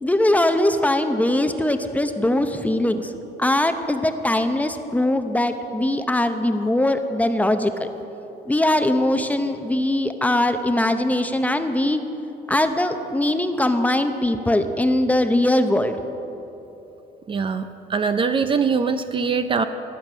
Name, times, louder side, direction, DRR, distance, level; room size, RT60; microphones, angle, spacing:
voice 1, 0.0-3.1 3.4-7.9 8.5-12.0 12.5-16.0, left 1 dB, 10° left, 8 dB, 0.7 m, -21 dB
voice 2, 17.3-19.6, right 5 dB, 30° right, 9 dB, 0.5 m, -22 dB
19.5 x 7.3 x 6.1 m, 3.0 s
cardioid pair, 110°, 17 cm